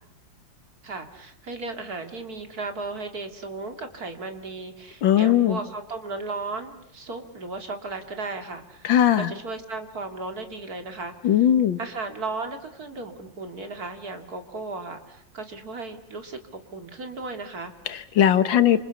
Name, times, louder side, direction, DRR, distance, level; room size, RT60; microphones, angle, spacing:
voice 1, 0.8-8.9 9.1-11.4 11.8-17.7, right 3 dB, 50° right, 6 dB, 3.0 m, -35 dB
voice 2, 5.0-5.6 8.8-9.3 11.2-11.8 17.9-18.8, left 10 dB, 85° left, 12 dB, 2.1 m, -19 dB
29.5 x 27.5 x 7.0 m, 0.77 s
omnidirectional pair, 2.0 m